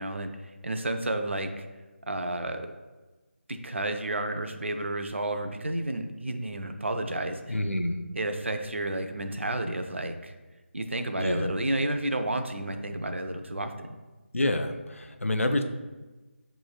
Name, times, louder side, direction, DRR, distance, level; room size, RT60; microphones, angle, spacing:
voice 1, 0.0-1.6 2.1-2.7 3.5-7.4 8.2-10.3 10.7-13.9, right 1 dB, 65° right, 6 dB, 0.5 m, -31 dB
voice 2, 7.5-8.0 11.2-11.6 14.3-15.6, left 1 dB, 80° left, 6 dB, 0.5 m, -28 dB
6.1 x 3.0 x 2.3 m, 1.2 s
figure-of-eight pair, 160°, 7 cm